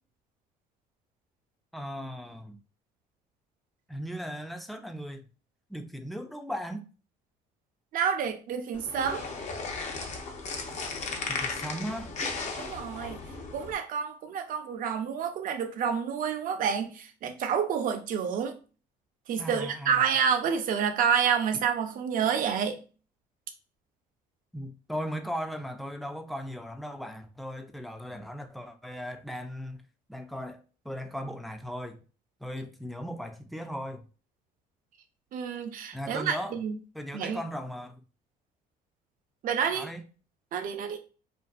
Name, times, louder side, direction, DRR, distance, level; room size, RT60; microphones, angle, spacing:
voice 1, 1.7-2.6 3.9-5.3 5.7-6.9 11.3-12.1 19.4-20.0 24.5-29.8 30.1-32.0 32.4-34.1 35.9-36.6 36.9-38.0 39.6-40.0, equal, ahead, 0.4 m, -37 dB
voice 2, 7.9-9.3 12.6-13.2 13.5-18.5 19.3-22.8 35.3-36.8 37.1-37.4 39.4-39.9 40.5-41.0, right 7 dB, 55° right, 0.6 m, -28 dB
sound 1, 8.7-13.7, left 4 dB, 45° left, 0.7 m, -36 dB
2.6 x 2.4 x 2.4 m
supercardioid pair, 85°, 17 cm